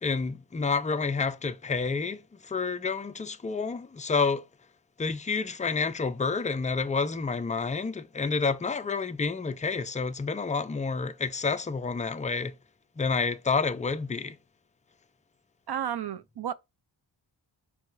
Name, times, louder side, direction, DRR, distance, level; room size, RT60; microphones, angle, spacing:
voice 1, 0.0-4.4 5.0-12.6 13.0-14.4, left 4 dB, 15° left, 0.3 m, -29 dB
voice 2, 15.7-16.5, right 10 dB, 55° right, 0.6 m, -32 dB
6.9 x 3.0 x 4.7 m
wide cardioid pair, 165°, 47 cm